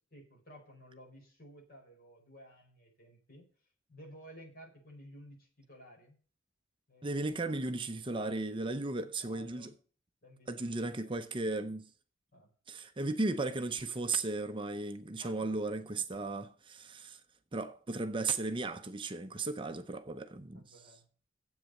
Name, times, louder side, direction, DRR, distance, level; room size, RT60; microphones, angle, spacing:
voice 1, 0.1-3.5 3.9-6.2 6.9-7.3 8.9-9.7 10.2-11.1 12.3-12.5 15.2-16.3 20.5-21.1, equal, 50° left, 4.9 m, -55 dB
voice 2, 7.0-9.7 10.5-11.9 12.7-17.2 17.5-20.8, right 3 dB, 25° right, 0.6 m, -35 dB
9.5 x 8.1 x 6.5 m
head